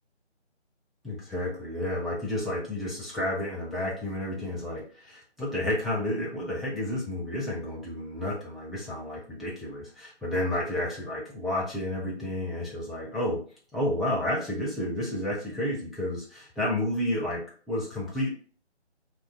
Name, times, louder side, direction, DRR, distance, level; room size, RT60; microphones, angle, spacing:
voice 1, 1.0-13.4 13.7-18.3, left 1 dB, ahead, -7 dB, 0.3 m, -31 dB
2.4 x 2.1 x 3.2 m, 0.41 s
figure-of-eight pair, 160°, 34 cm